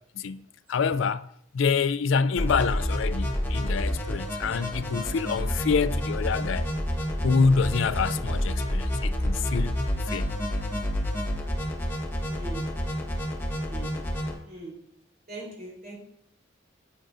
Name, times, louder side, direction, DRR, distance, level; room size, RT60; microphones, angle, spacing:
voice 1, 0.2-1.3 1.5-6.6 7.2-10.3, left 5 dB, 70° left, 0.4 m, -26 dB
sound 1, 2.4-14.3, equal, 10° left, 1.3 m, -29 dB
voice 2, 12.3-12.7 13.6-14.0 14.4-14.8 15.3-16.0, right 2 dB, 45° right, 3.8 m, -41 dB
10.0 x 9.0 x 2.6 m
head